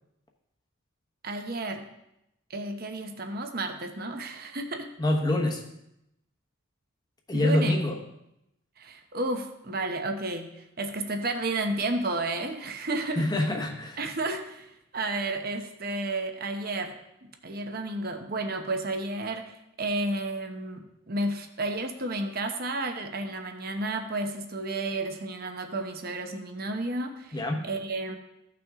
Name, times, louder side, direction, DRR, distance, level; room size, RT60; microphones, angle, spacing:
voice 1, 1.2-1.8 2.5-4.9 7.3-7.7 8.8-13.5 14.0-17.0 17.4-28.2, right 2 dB, 45° right, 6 dB, 1.0 m, -32 dB
voice 2, 5.0-5.6 7.3-8.0 13.2-14.0 27.3-27.6, left 1 dB, 20° left, 2 dB, 1.1 m, -25 dB
15.0 x 5.9 x 3.7 m, 0.85 s
head